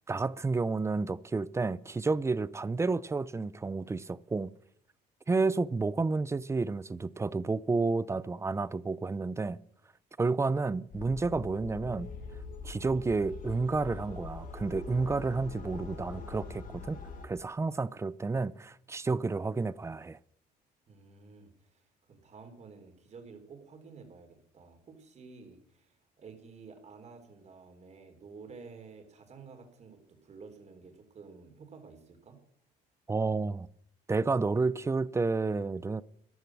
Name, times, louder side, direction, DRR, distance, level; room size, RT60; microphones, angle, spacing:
voice 1, 0.1-4.5 5.3-9.6 10.2-12.1 12.6-17.0 17.2-20.2 33.1-33.7 34.1-36.0, right 3 dB, 15° right, 0.6 m, -30 dB
sound 1, 10.9-17.3, left 4 dB, 50° left, 2.8 m, -43 dB
voice 2, 20.9-32.4, right 4 dB, 40° right, 3.7 m, -51 dB
14.5 x 11.5 x 6.2 m
cardioid pair, 110°, 17 cm